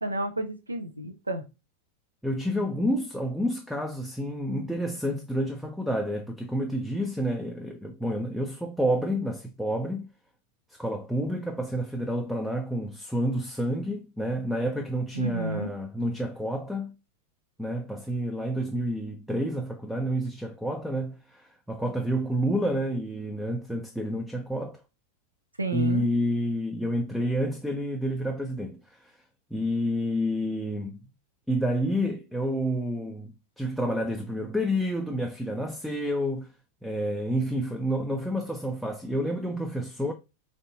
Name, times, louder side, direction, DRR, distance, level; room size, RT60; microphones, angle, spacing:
voice 1, 0.0-1.5 15.1-15.7 25.6-26.1, right 2 dB, 80° right, 0.6 m, -31 dB
voice 2, 2.2-10.1 10.7-16.9 17.6-24.8 25.7-29.2 29.5-31.0 31.5-36.5 36.8-40.1, equal, ahead, 0.5 m, -29 dB
3.5 x 2.6 x 4.0 m
figure-of-eight pair, 90°, 0 cm